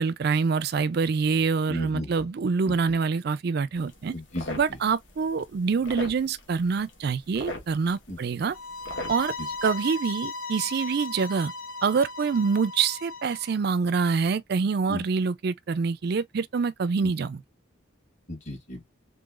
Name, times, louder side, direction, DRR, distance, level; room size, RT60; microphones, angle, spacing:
voice 1, 0.0-4.1 4.6-8.6 9.1-9.3 9.6-11.5 11.8-17.4, right 5 dB, 50° right, 0.4 m, -26 dB
voice 2, 1.7-2.3 2.7-2.8 4.1-4.8 8.1-8.2 9.4-9.5 14.9-15.0 17.0-17.1 18.3-18.8, left 1 dB, 35° left, 1.4 m, -35 dB
sound 1, 3.8-9.8, left 1 dB, 60° left, 1.2 m, -42 dB
sound 2, 8.5-13.5, left 3 dB, 90° left, 0.9 m, -37 dB
3.8 x 3.3 x 2.4 m
head